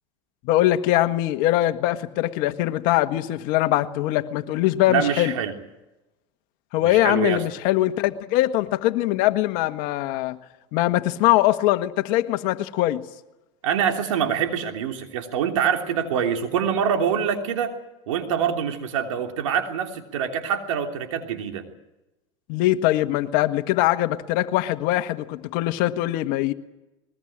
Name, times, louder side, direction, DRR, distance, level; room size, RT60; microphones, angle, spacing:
voice 1, 0.4-5.3 6.7-10.4 10.7-13.0 22.5-26.5, left 15 dB, 60° left, 9 dB, 1.6 m, -22 dB
voice 2, 4.9-5.5 6.8-7.4 13.6-17.8 18.1-21.6, right 8 dB, 85° right, 4 dB, 3.2 m, -25 dB
21.0 x 20.5 x 8.9 m, 1.0 s
supercardioid pair, 110°, 16 cm